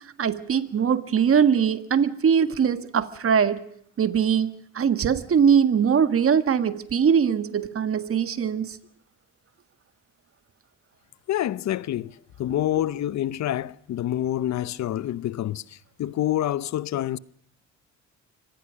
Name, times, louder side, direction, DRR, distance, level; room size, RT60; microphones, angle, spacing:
voice 1, 0.2-3.6 4.0-8.8, right 7 dB, 50° right, 1.6 m, -21 dB
voice 2, 11.3-17.2, left 12 dB, 65° left, 0.8 m, -27 dB
24.5 x 18.0 x 6.4 m
cardioid pair, 90°, 30 cm